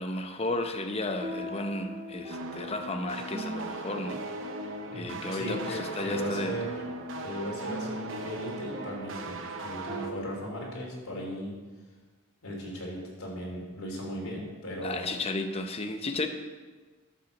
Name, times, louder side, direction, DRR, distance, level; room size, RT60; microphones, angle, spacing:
voice 1, 0.0-4.2 4.9-6.5 14.8-16.3, left 2 dB, 25° left, 7 dB, 0.8 m, -33 dB
sound 1, 0.9-10.4, right 1 dB, 30° right, 1.3 m, -43 dB
sound 2, 2.3-10.1, right 2 dB, 60° right, 1.0 m, -39 dB
voice 2, 4.9-6.8 7.2-11.6 12.4-15.1, equal, 70° left, -2 dB, 3.4 m, -37 dB
12.0 x 6.0 x 7.1 m, 1.4 s
head